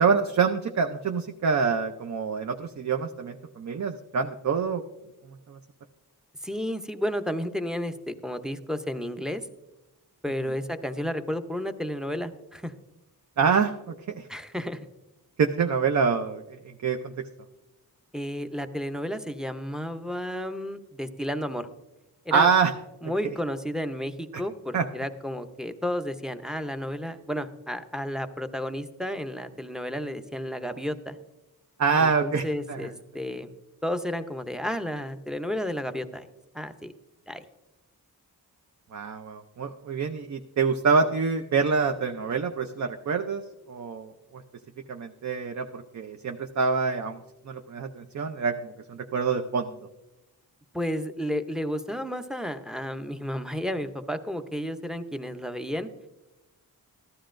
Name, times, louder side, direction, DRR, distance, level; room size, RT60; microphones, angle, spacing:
voice 1, 0.0-4.8 5.5-5.6 13.4-14.3 15.4-17.1 22.3-22.7 24.7-24.8 31.8-32.8 38.9-43.4 43.7-44.4 44.9-47.2 47.5-49.7, right 5 dB, 45° right, 5 dB, 0.6 m, -26 dB
voice 2, 6.4-9.5 10.2-12.7 14.3-14.9 18.1-21.7 22.3-22.5 23.0-31.2 31.9-33.5 33.8-36.3 36.5-36.9 37.3-37.4 50.7-55.9, equal, ahead, 9 dB, 0.6 m, -32 dB
14.0 x 12.5 x 2.5 m, 0.99 s
wide cardioid pair, 95°, 38 cm